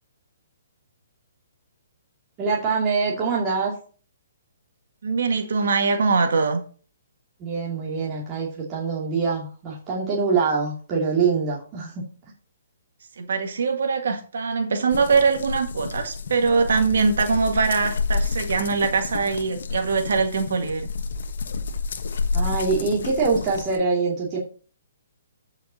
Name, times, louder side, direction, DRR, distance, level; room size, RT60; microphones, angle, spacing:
voice 1, 2.4-3.7 7.4-11.9 22.3-24.4, right 4 dB, 25° right, -5 dB, 2.6 m, -24 dB
voice 2, 5.0-6.6 13.2-20.8, right 4 dB, 70° right, 5 dB, 1.8 m, -22 dB
sound 1, 14.9-23.8, left 4 dB, 70° left, 1.2 m, -30 dB
13.5 x 5.9 x 2.9 m, 0.40 s
hypercardioid pair, 140°, 0 cm